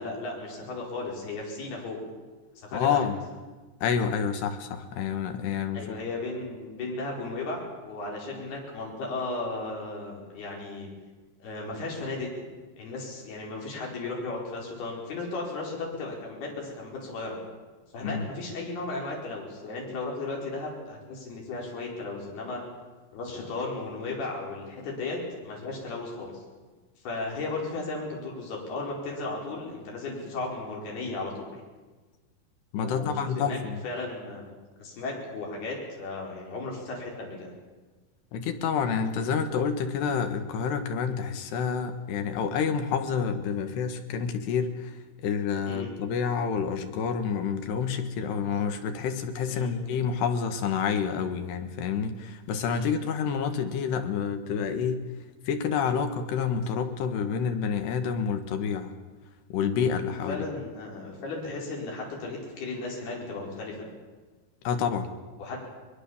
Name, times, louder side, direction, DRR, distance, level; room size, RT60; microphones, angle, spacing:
voice 1, 0.0-2.0 2.6-3.1 5.7-10.9 11.4-12.3 12.8-17.4 17.9-22.6 23.1-26.3 27.0-31.6 32.8-33.6 33.8-34.5 34.8-37.5 45.7-45.9 49.5-49.7 52.6-52.9 60.3-63.9 65.4-65.6, left 3 dB, 70° left, -2 dB, 6.7 m, -35 dB
voice 2, 2.7-3.2 3.8-6.0 18.0-18.3 32.7-33.8 38.3-55.1 55.5-58.9 59.5-60.4 64.7-65.1, left 6 dB, 90° left, 6 dB, 3.7 m, -28 dB
22.5 x 21.5 x 7.2 m, 1.3 s
omnidirectional pair, 4.7 m